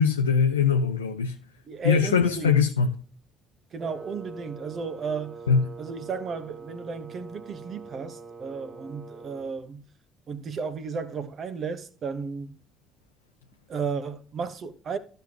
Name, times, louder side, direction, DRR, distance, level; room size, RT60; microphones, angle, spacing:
voice 1, 0.0-1.4 1.8-3.0 5.5-5.7, left 6 dB, 90° left, 0.5 m, -22 dB
voice 2, 1.7-2.6 3.7-5.4 5.8-9.8 10.3-12.5 13.7-15.0, right 5 dB, 45° right, 1.1 m, -33 dB
Wind instrument woodwind instrument, 3.8-9.6, right 4 dB, 25° right, 1.5 m, -43 dB
13.5 x 5.7 x 2.9 m
hypercardioid pair, 55°, 0 cm